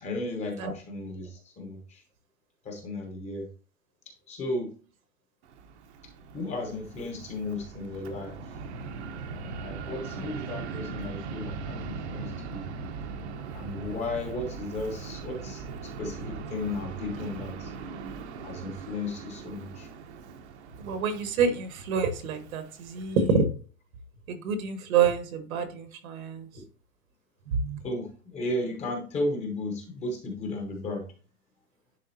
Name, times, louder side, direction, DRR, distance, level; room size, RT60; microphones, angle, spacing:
voice 1, 0.0-2.0 2.6-3.5 4.3-4.7 6.3-8.4 9.6-12.7 13.5-17.7 18.4-19.9 26.6-26.7 27.8-31.0, left 2 dB, 15° left, 3 dB, 0.9 m, -34 dB
Fixed-wing aircraft airplane, 5.4-23.3, right 5 dB, 50° right, 1.0 m, -40 dB
voice 2, 20.8-23.5 24.3-26.5 27.5-27.8, right 5 dB, 70° right, 9 dB, 1.5 m, -27 dB
10.5 x 3.5 x 2.8 m, 0.38 s
hypercardioid pair, 150°, 44 cm